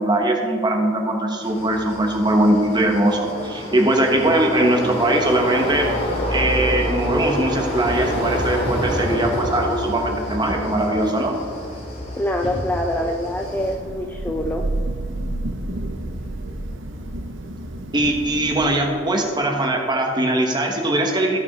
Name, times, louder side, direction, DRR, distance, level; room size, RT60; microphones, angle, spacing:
voice 1, 0.0-5.9 6.3-11.3 12.9-13.1 17.9-21.4, right 1 dB, 25° right, 2 dB, 1.2 m, -20 dB
sound 1, 1.4-13.7, left 1 dB, 35° left, 2.2 m, -28 dB
voice 2, 12.1-14.6, left 1 dB, 10° left, 3 dB, 0.4 m, -25 dB
Thunder / Rain, 13.3-19.0, right 1 dB, 75° right, 0.7 m, -30 dB
13.5 x 5.9 x 4.0 m, 2.3 s
head